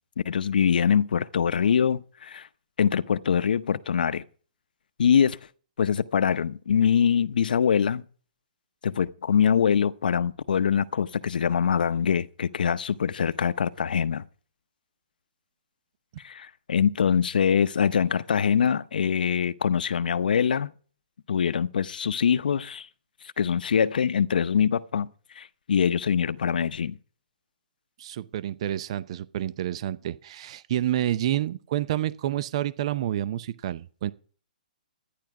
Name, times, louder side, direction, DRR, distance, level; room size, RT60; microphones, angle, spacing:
voice 1, 0.2-2.5 2.8-4.2 5.0-5.4 5.8-8.0 8.8-14.2 16.2-20.7 21.3-22.9 23.4-25.1 25.4-27.0, left 7 dB, 75° left, 0.7 m, -23 dB
voice 2, 28.0-34.1, right 12 dB, 40° right, 0.6 m, -29 dB
13.0 x 10.5 x 4.8 m
hypercardioid pair, 165°, 5 cm